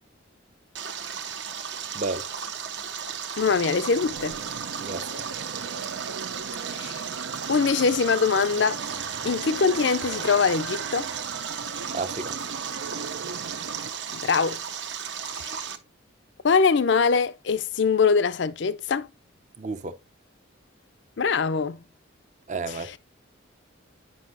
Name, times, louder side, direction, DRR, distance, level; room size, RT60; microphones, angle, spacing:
Stream, 0.8-15.8, right 7 dB, 60° right, 0.9 m, -35 dB
voice 1, 1.9-2.3 4.8-5.2 11.9-12.3 19.6-19.9 22.5-22.9, right 3 dB, 35° right, 0.6 m, -31 dB
voice 2, 3.4-4.4 6.7-7.0 7.5-8.8 9.2-11.1 14.1-14.6 15.3-15.5 16.4-19.1 21.2-21.8 22.7-23.0, left 5 dB, 60° left, 0.5 m, -23 dB
sound 1, 3.4-13.9, right 5 dB, 85° right, 0.6 m, -38 dB
9.7 x 5.4 x 2.6 m
head